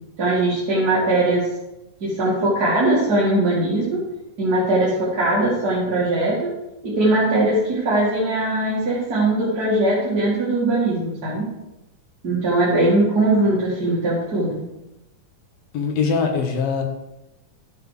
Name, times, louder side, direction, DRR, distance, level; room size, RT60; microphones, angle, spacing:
voice 1, 0.2-1.5 2.0-4.0 4.4-6.5 6.8-11.5 12.2-14.6, right 2 dB, 30° right, -8 dB, 2.2 m, -20 dB
voice 2, 15.7-16.8, left 5 dB, 70° left, 3 dB, 2.9 m, -22 dB
13.0 x 7.3 x 5.0 m, 0.95 s
omnidirectional pair, 4.4 m